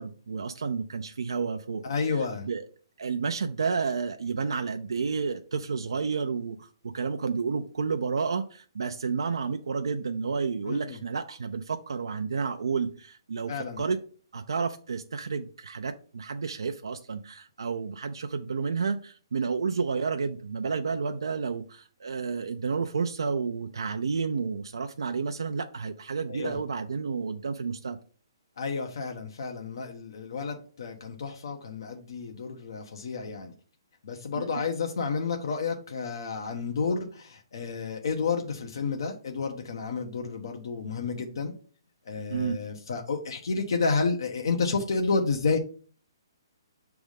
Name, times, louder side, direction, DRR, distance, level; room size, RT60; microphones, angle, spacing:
voice 1, 0.0-1.8 2.1-2.7 3.0-13.5 13.8-14.0 14.3-28.0 34.3-34.5 42.3-42.6, right 5 dB, 85° right, 6 dB, 0.5 m, -31 dB
voice 2, 1.8-2.5 10.7-11.0 13.5-13.8 26.3-26.6 28.6-33.5 34.0-41.5 42.1-45.6, left 4 dB, 65° left, 3 dB, 1.0 m, -30 dB
6.3 x 3.5 x 5.1 m, 0.41 s
hypercardioid pair, 160°, 2 cm